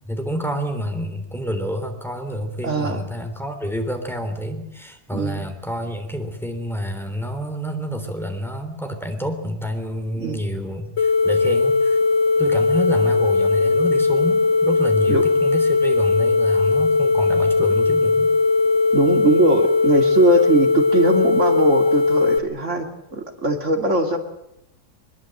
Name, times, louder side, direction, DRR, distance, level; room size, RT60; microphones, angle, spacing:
voice 1, 0.0-12.0 12.4-18.3, equal, ahead, 5 dB, 3.3 m, -28 dB
voice 2, 2.6-3.0 5.1-5.5 10.2-10.5 15.1-15.2 18.9-22.9 23.1-24.2, right 2 dB, 45° right, 4 dB, 2.8 m, -20 dB
sound 1, 11.0-22.4, left 4 dB, 45° left, 1.7 m, -18 dB
22.5 x 22.0 x 7.9 m, 0.85 s
omnidirectional pair, 1.8 m